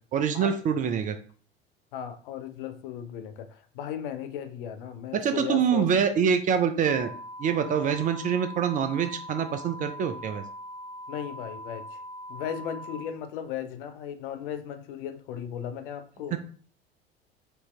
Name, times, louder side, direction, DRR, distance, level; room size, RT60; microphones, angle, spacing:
voice 1, 0.1-1.1 5.1-7.1 7.4-10.4 16.3-16.4, right 7 dB, 25° right, 8 dB, 0.4 m, -25 dB
voice 2, 1.9-5.9 11.1-12.0 12.3-16.4, left 9 dB, 55° left, 8 dB, 0.6 m, -36 dB
sound 1, 6.8-13.0, equal, 25° left, 0.8 m, -41 dB
4.5 x 2.7 x 3.1 m, 0.43 s
figure-of-eight pair, 70°, 31 cm